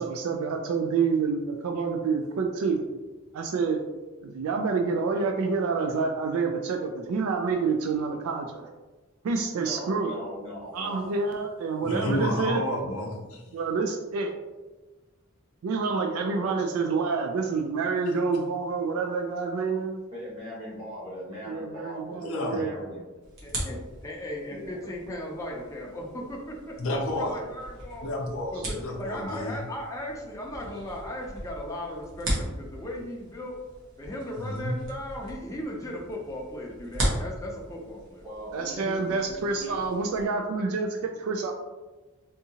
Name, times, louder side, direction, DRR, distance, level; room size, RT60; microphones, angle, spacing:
voice 1, 0.0-2.8 3.3-3.8 4.2-8.7 9.2-10.1 10.7-12.6 13.5-14.4 15.6-20.0 21.5-22.7 38.5-41.5, right 4 dB, 80° right, 3 dB, 0.3 m, -28 dB
voice 2, 9.5-11.3 16.2-16.5 20.1-23.0 24.5-24.8 29.1-29.2 38.2-39.8, equal, 25° right, -9 dB, 1.1 m, -40 dB
voice 3, 11.8-13.4 22.2-22.6 26.8-27.4 28.0-29.6 34.4-34.8, left 1 dB, 70° left, 0 dB, 0.6 m, -30 dB
sound 1, 23.2-40.2, right 1 dB, 60° right, 1.1 m, -38 dB
voice 4, 23.4-26.5 26.9-28.1 28.5-33.6 34.0-38.2, left 1 dB, 15° left, -2 dB, 0.5 m, -37 dB
3.6 x 2.7 x 2.8 m, 1.2 s
head